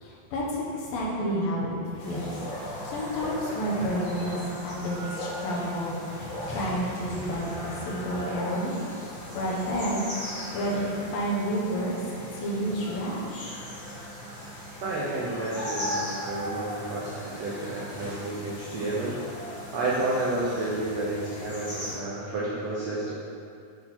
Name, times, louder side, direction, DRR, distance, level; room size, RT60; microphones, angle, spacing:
voice 1, 0.0-2.3 2.6-6.0 6.5-8.7 9.3-10.1 10.5-11.9 12.3-13.6, equal, 75° left, -4 dB, 2.8 m, -30 dB
sound 1, 2.0-21.9, left 1 dB, 45° left, 2.5 m, -38 dB
voice 2, 14.8-23.1, right 2 dB, 80° right, -7 dB, 1.5 m, -31 dB
8.4 x 4.3 x 4.4 m, 2.3 s
omnidirectional pair, 4.3 m